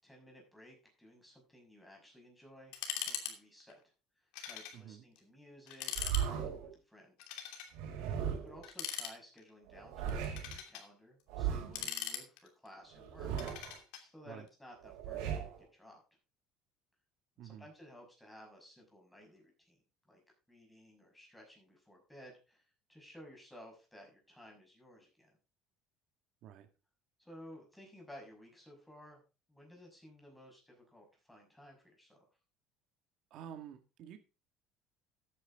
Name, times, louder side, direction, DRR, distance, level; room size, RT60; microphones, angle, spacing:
voice 1, 0.0-3.8 4.5-7.2 8.0-16.0 17.4-19.8 20.1-20.2 20.5-25.4 27.2-29.2 29.5-32.2, equal, 5° left, 1 dB, 6.0 m, -56 dB
sound 1, 2.7-3.3 3.6-3.7 4.3-4.8 5.2-5.3 5.7-6.3 7.2-7.7 8.6-9.5 10.1-10.9 11.5-12.7 13.4-14.0, left 9 dB, 85° left, 2.8 m, -41 dB
voice 2, 4.7-5.1 14.3-14.4 17.4-17.7 26.4-26.7 33.3-34.2, right 9 dB, 60° right, 7 dB, 1.9 m, -49 dB
sound 2, 5.9-6.7 7.7-8.6 9.7-10.6 11.3-11.9 12.9-13.8 14.8-15.6, right 8 dB, 80° right, 4.4 m, -37 dB
13.5 x 9.8 x 3.7 m, 0.33 s
cardioid pair, 135°, 0 cm